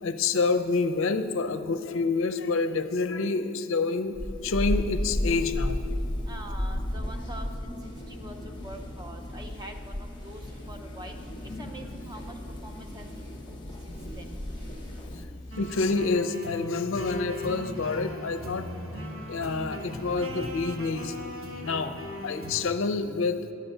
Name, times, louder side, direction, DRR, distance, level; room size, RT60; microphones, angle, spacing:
voice 1, 0.0-4.1 4.4-5.8 15.6-18.7 19.3-21.1 21.6-21.9 22.2-23.4, left 4 dB, 65° left, 10 dB, 0.5 m, -27 dB
sound 1, 4.1-15.3, left 1 dB, 20° left, 0.8 m, -34 dB
voice 2, 6.3-7.8 8.1-10.4 10.7-11.2 11.6-12.3 12.6-13.1 13.9-14.3, right 1 dB, 20° right, 4 dB, 0.7 m, -44 dB
sound 2, 7.8-15.7, left 2 dB, 60° right, 2.2 m, -46 dB
sound 3, 15.5-22.6, equal, 80° right, 1.4 m, -38 dB
10.0 x 8.4 x 5.5 m, 2.6 s
head